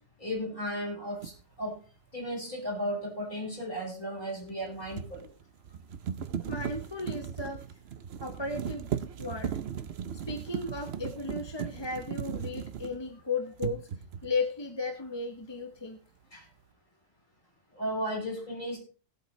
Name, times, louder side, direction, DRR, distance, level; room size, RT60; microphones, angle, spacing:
voice 1, 0.2-1.3 1.6-1.8 2.1-5.2 16.3-16.4 17.7-18.8, equal, 40° left, -1 dB, 6.1 m, -34 dB
sound 1, 1.2-1.4 4.4-13.2 13.6-14.4, right 8 dB, 65° right, 1.0 m, -37 dB
voice 2, 6.4-7.6 8.2-8.9 9.2-9.5 10.3-13.9 14.2-16.0, left 3 dB, 25° left, 4 dB, 1.1 m, -35 dB
19.0 x 8.2 x 3.2 m, 0.37 s
omnidirectional pair, 1.2 m